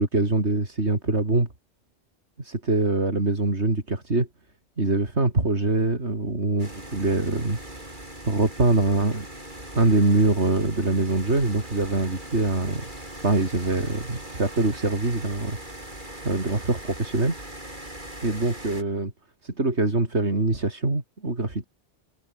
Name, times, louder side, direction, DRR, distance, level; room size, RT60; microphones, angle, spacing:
voice 1, 0.0-1.5 2.4-4.3 4.8-7.6 8.3-9.3 9.7-12.8 13.2-15.6 16.2-17.4 18.2-19.1 19.4-21.7, right 2 dB, 85° right, 4.4 m, -24 dB
sound 1, 6.6-18.8, right 1 dB, 45° right, 7.9 m, -40 dB
omnidirectional pair, 1.1 m